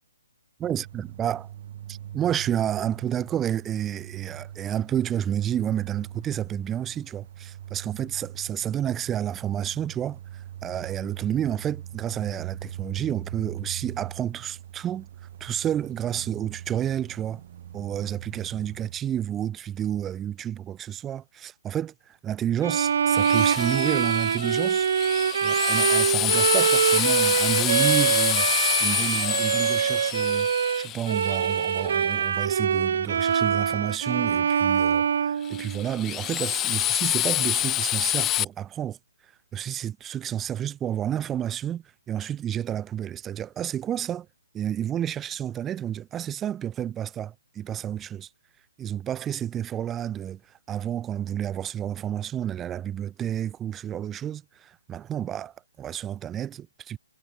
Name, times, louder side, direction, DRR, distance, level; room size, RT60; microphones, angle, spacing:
voice 1, 0.6-1.5 1.9-15.1 15.4-17.4 17.7-24.9 25.4-30.5 30.8-39.0 39.5-44.3 44.5-48.3 48.8-50.4 50.7-57.0, right 10 dB, 10° right, 1.8 m, -30 dB
sound 1, 0.6-19.0, right 11 dB, 40° right, 4.4 m, -41 dB
Bowed string instrument, 22.6-36.1, right 7 dB, 55° right, 3.2 m, -24 dB
Drill, 23.1-32.0 35.4-38.4, left 14 dB, 15° left, 0.9 m, -27 dB
hypercardioid pair, 165°, 0 cm